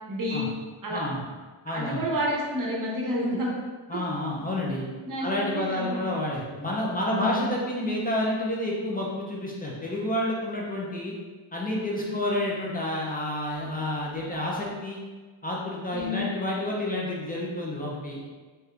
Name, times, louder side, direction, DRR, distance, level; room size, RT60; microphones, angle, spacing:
voice 1, 0.1-0.5 0.8-1.0 1.7-3.5 5.0-6.0 7.0-7.5 12.0-12.2 15.9-16.3, left 1 dB, 40° right, -3 dB, 0.8 m, -30 dB
voice 2, 1.6-2.0 3.9-4.9 5.2-11.1 11.5-15.0 15.4-18.2, left 1 dB, 20° left, -4 dB, 0.3 m, -29 dB
3.4 x 2.7 x 2.4 m, 1.4 s
wide cardioid pair, 175°, 49 cm